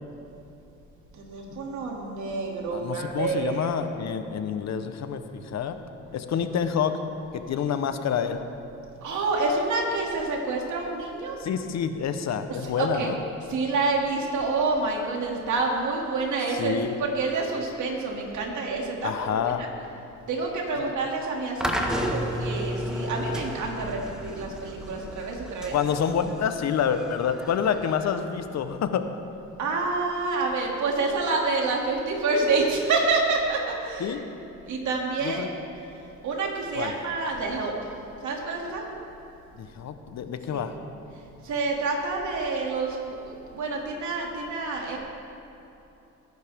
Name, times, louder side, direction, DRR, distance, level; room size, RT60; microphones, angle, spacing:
voice 1, 1.1-3.7 9.0-11.4 12.8-13.1 13.5-16.7 17.0-19.7 20.3-25.7 29.6-34.2 34.7-35.5 36.2-37.7 38.2-38.8 40.5-40.6 41.4-45.0, right 3 dB, 75° right, -1 dB, 2.7 m, -28 dB
voice 2, 2.7-5.8 6.1-6.9 7.3-8.4 11.4-13.2 16.6-16.9 19.0-19.6 25.7-29.0 34.0-34.2 35.2-35.5 36.7-36.9 39.6-40.7, left 7 dB, 60° left, 8 dB, 1.0 m, -27 dB
sound 1, 21.6-28.7, equal, ahead, 1.6 m, -33 dB
21.5 x 11.0 x 3.6 m, 2.9 s
cardioid pair, 90°, 30 cm